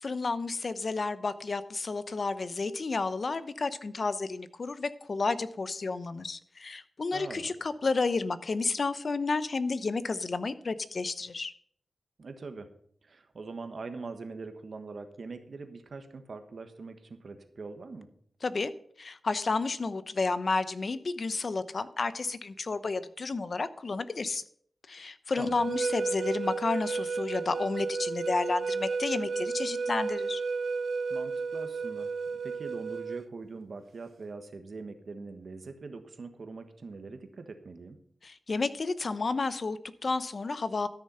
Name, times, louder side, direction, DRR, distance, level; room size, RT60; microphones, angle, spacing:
voice 1, 0.0-11.5 18.4-18.7 19.0-24.4 24.9-30.4 38.2-40.9, left 3 dB, 55° left, 14 dB, 0.7 m, -31 dB
voice 2, 7.1-7.5 12.2-12.7 13.0-18.1 25.4-25.7 31.1-38.0, right 4 dB, 65° right, 7 dB, 1.4 m, -43 dB
sound 1, 25.5-33.2, right 4 dB, 80° right, 0.5 m, -33 dB
13.0 x 6.6 x 5.6 m, 0.63 s
wide cardioid pair, 75°, 0 cm